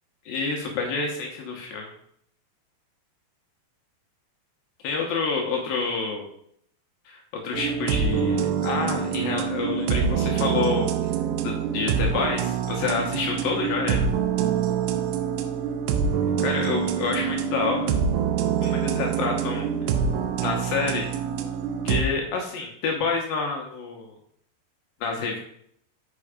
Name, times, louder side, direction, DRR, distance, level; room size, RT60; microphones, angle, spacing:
voice 1, 0.3-1.9 4.8-6.3 7.1-10.9 11.4-14.1 16.4-18.0 18.6-19.7 20.4-21.1 21.8-24.1 25.0-25.4, left 4 dB, 70° left, 0 dB, 2.5 m, -28 dB
sound 1, 7.5-22.0, right 7 dB, 90° right, 2.8 m, -25 dB
7.6 x 5.6 x 4.9 m, 0.68 s
omnidirectional pair, 4.9 m